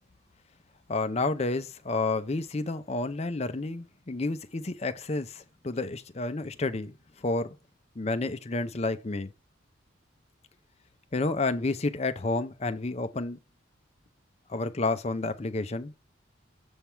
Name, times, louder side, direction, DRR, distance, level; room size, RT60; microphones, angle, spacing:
voice 1, 0.9-7.0 7.2-7.6 8.0-9.3 11.1-13.4 14.5-15.9, left 3 dB, 35° left, 0.5 m, -30 dB
7.1 x 3.5 x 4.3 m
head